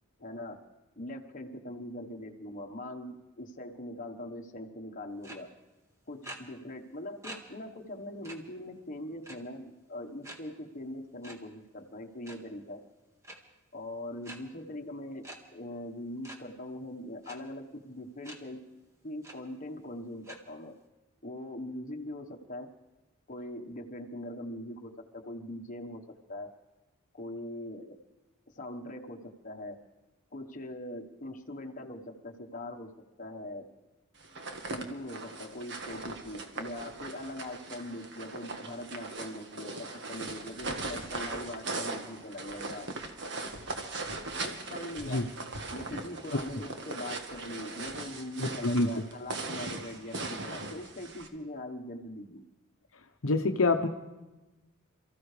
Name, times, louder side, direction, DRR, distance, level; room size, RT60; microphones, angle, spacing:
voice 1, 0.2-0.6 1.0-5.5 6.1-12.8 13.7-15.2 15.5-18.6 19.0-20.8 21.2-22.7 23.3-26.0 26.3-26.5 27.1-28.0 28.5-29.8 30.3-32.9 33.2-33.7 34.7-42.9 44.4-45.2 45.7-52.4, left 1 dB, 40° left, 3 dB, 1.3 m, -41 dB
sound 1, 5.2-5.4 6.2-6.4 7.2-7.4 7.8-7.9 8.2-8.4 9.2-9.6 10.2-10.4 11.2-11.3 12.1-12.4 13.2-13.4 14.2-14.4 15.2-15.4 16.2-16.4 17.2-17.4 18.2-18.4 18.8-18.9 19.2-19.3 20.2-20.4, right 1 dB, 15° right, 1.6 m, -44 dB
sound 2, 34.2-51.3, right 3 dB, 55° right, 1.7 m, -39 dB
voice 2, 48.4-48.9 53.2-53.9, left 2 dB, 70° left, 5 dB, 0.9 m, -26 dB
28.0 x 15.0 x 3.4 m, 1.1 s
head